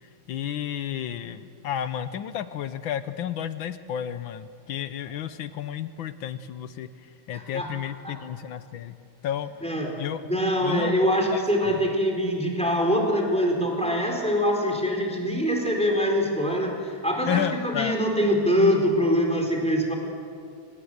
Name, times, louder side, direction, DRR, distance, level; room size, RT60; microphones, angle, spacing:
voice 1, 0.3-8.9 9.2-9.5 10.0-10.2 10.6-11.4 11.7-11.8 17.3-18.0, left 10 dB, 70° left, 12 dB, 1.5 m, -32 dB
voice 2, 7.3-7.7 8.0-8.2 9.6-9.9 10.3-20.0, equal, 5° left, 1 dB, 4.1 m, -24 dB
25.5 x 20.0 x 8.1 m, 2.3 s
omnidirectional pair, 2.4 m